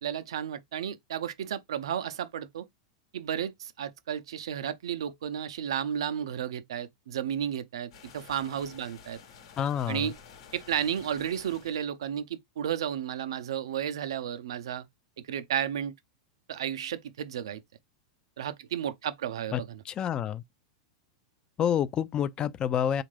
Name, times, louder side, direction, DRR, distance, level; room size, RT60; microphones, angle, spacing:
voice 1, 0.0-2.7 3.1-9.2 9.9-10.1 10.5-14.9 15.2-15.9 16.5-17.6 18.4-19.8, right 9 dB, 75° right, 0.5 m, -33 dB
sound 1, 7.9-11.9, left 6 dB, 70° left, 1.0 m, -51 dB
voice 2, 9.6-10.1 19.5-20.4 21.6-23.0, left 9 dB, 30° left, 0.4 m, -28 dB
3.5 x 2.4 x 3.2 m
hypercardioid pair, 105°, 3 cm